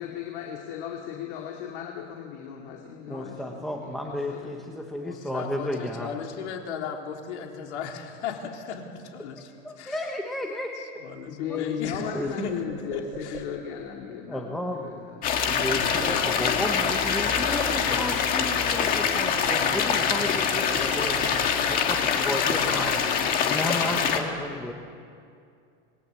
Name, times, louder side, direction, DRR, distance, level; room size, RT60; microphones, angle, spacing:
voice 1, 0.0-4.6 11.3-15.2 15.5-15.7, left 8 dB, 45° left, 1 dB, 2.5 m, -36 dB
voice 2, 3.1-6.1 9.4-10.7 11.5-11.6 12.1-12.5 14.3-14.9 15.5-24.7, left 1 dB, ahead, 1 dB, 0.9 m, -33 dB
voice 3, 5.0-10.1 11.0-12.6 12.9-13.5, left 6 dB, 65° left, 2 dB, 3.9 m, -37 dB
sound 1, 11.8-13.8 15.3-16.6 17.0-18.4 18.7-20.1 20.4-21.8 22.1-23.5, right 5 dB, 75° right, 5.1 m, -44 dB
sound 2, 15.2-24.2, left 7 dB, 25° left, 1.8 m, -24 dB
27.0 x 20.5 x 8.3 m, 2.4 s
supercardioid pair, 175°, 36 cm